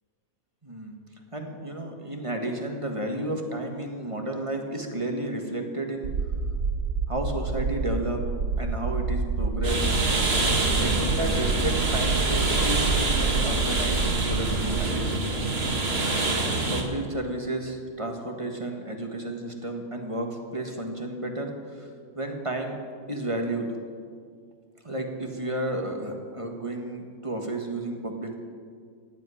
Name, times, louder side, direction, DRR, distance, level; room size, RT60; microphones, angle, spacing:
voice 1, 0.6-0.9 1.3-6.1 7.1-8.2 8.6-9.9 10.8-15.5 16.7-21.9 22.1-22.8 23.1-23.8 24.8-28.4, right 1 dB, 20° right, 2 dB, 1.6 m, -32 dB
sound 1, 6.0-14.9, right 4 dB, 65° right, 1.3 m, -28 dB
sound 2, 9.6-16.8, right 2 dB, 45° right, 2.0 m, -26 dB
15.5 x 8.2 x 9.8 m, 2.1 s
omnidirectional pair, 1.5 m